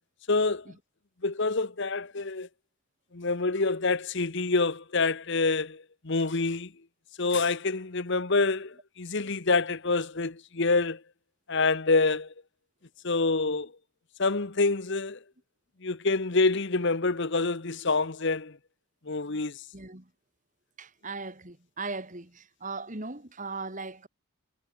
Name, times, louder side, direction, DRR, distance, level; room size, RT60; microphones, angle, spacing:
voice 1, 0.3-0.7 1.2-2.5 3.1-6.7 7.2-11.0 11.5-12.3 13.0-13.7 14.2-15.2 15.8-18.6 19.1-19.6, left 3 dB, 55° left, 1.1 m, -27 dB
voice 2, 19.7-20.1 20.8-24.1, right 3 dB, 35° right, 2.5 m, -38 dB
head